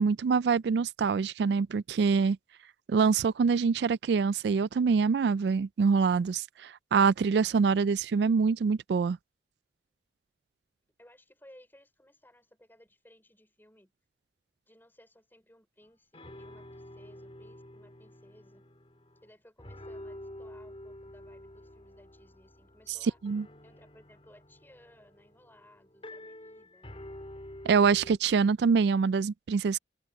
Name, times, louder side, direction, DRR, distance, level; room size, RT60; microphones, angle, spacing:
voice 1, 0.0-2.4 2.9-9.2 23.0-23.4 27.6-29.8, right 5 dB, 70° right, 0.3 m, -25 dB
voice 2, 11.0-13.9 14.7-18.6 19.2-23.2 23.6-26.9, left 1 dB, 10° left, 4.6 m, -59 dB
sound 1, 15.8-15.9 16.1-19.3 19.6-28.2, left 1 dB, 30° left, 3.1 m, -48 dB
open air
head